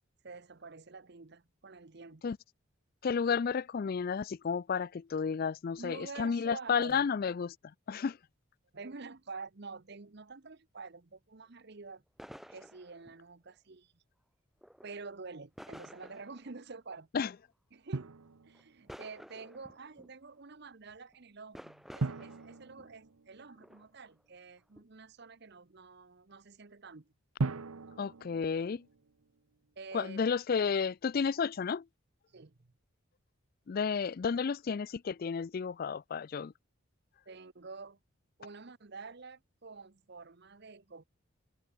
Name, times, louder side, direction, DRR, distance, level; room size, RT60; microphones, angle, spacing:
voice 1, 0.2-2.2 5.7-7.0 8.7-12.0 12.5-14.0 14.8-17.1 17.7-18.1 18.5-27.1 29.8-30.2 32.3-32.7 37.3-38.0 38.4-41.0, right 4 dB, 50° right, 0.9 m, -48 dB
voice 2, 3.0-7.6 7.9-8.2 17.1-17.3 28.0-28.9 29.9-31.9 33.7-36.5, left 6 dB, 45° left, 0.3 m, -32 dB
sound 1, 12.2-13.2 14.6-15.1 15.6-16.5 17.0-17.1 18.5-20.1 20.9-21.2 21.5-22.9 23.6-24.3 24.8-24.9, equal, ahead, 1.0 m, -52 dB
Drum, 17.9-19.0 22.0-23.8 27.4-29.4, right 3 dB, 90° right, 0.8 m, -39 dB
head